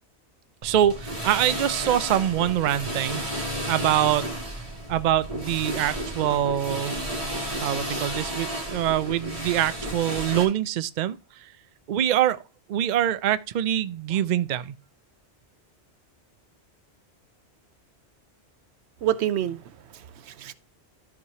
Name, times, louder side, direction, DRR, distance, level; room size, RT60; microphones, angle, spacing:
sound 1, 0.6-10.5, right 1 dB, 30° right, 2.4 m, -32 dB
voice 1, 0.6-3.2 3.7-4.3 4.9-7.0 7.6-11.5 11.9-12.4 12.7-14.7, right 11 dB, 55° right, 0.5 m, -24 dB
voice 2, 19.0-20.5, right 11 dB, 80° right, 0.9 m, -28 dB
13.0 x 4.7 x 2.8 m
omnidirectional pair, 1.1 m